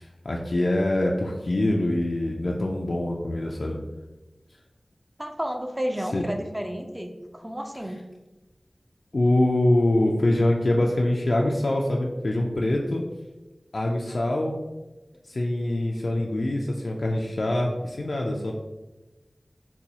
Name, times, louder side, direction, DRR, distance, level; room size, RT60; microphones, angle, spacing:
voice 1, 0.0-3.8 6.1-6.2 9.1-13.0 13.7-14.6 15.3-18.5, left 1 dB, 75° left, -1 dB, 0.3 m, -24 dB
voice 2, 5.2-8.0, equal, 20° right, 4 dB, 0.4 m, -31 dB
4.1 x 2.2 x 2.8 m, 1.1 s
wide cardioid pair, 60°, 0 cm